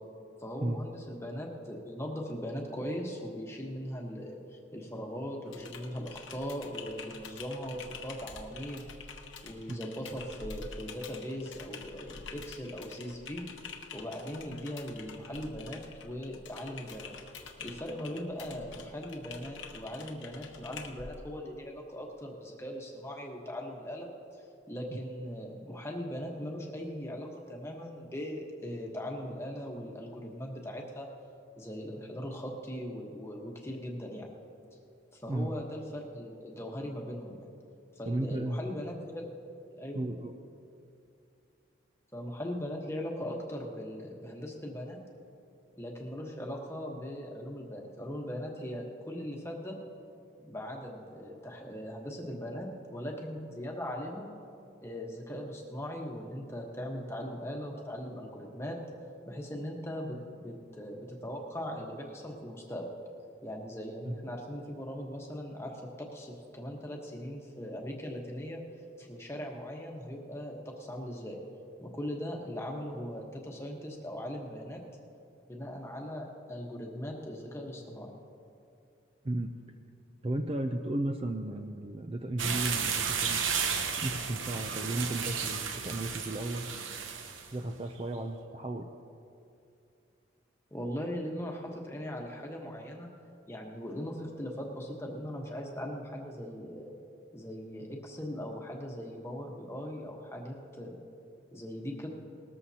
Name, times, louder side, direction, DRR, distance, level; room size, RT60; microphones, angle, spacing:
voice 1, 0.4-8.8 9.4-13.4 13.9-17.2 17.6-31.1 31.6-34.3 35.1-37.5 37.9-39.3 39.7-40.0 42.1-45.0 45.7-49.8 50.4-54.4 54.8-58.8 59.3-62.9 63.4-68.6 69.0-71.4 71.8-74.8 75.5-78.1 90.7-93.1 93.5-96.9 97.3-101.0 101.5-102.1, equal, 15° left, 0 dB, 1.2 m, -39 dB
Typing, 5.5-21.1, left 5 dB, 80° left, 1.0 m, -47 dB
voice 2, 38.1-38.6 39.9-40.3 64.1-64.2 79.2-79.5 80.2-83.4 84.0-86.6 87.5-88.9, right 1 dB, 30° right, 5 dB, 0.5 m, -34 dB
sound 1, 82.4-87.5, right 6 dB, 90° right, 0.9 m, -33 dB
19.5 x 13.5 x 2.8 m, 2.6 s
head